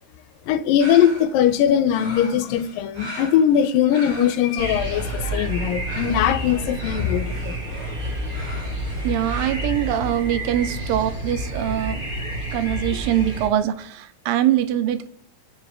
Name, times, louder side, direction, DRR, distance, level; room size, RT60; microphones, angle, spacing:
voice 1, 0.5-7.5, left 9 dB, 85° left, 2.4 m, -20 dB
sound 1, 0.8-9.5, equal, 70° right, 5.5 m, -40 dB
sound 2, 4.6-13.5, right 1 dB, 20° right, 1.9 m, -29 dB
voice 2, 9.0-12.0 12.5-15.1, right 11 dB, 85° right, 2.5 m, -23 dB
26.0 x 9.8 x 3.6 m
omnidirectional pair, 3.9 m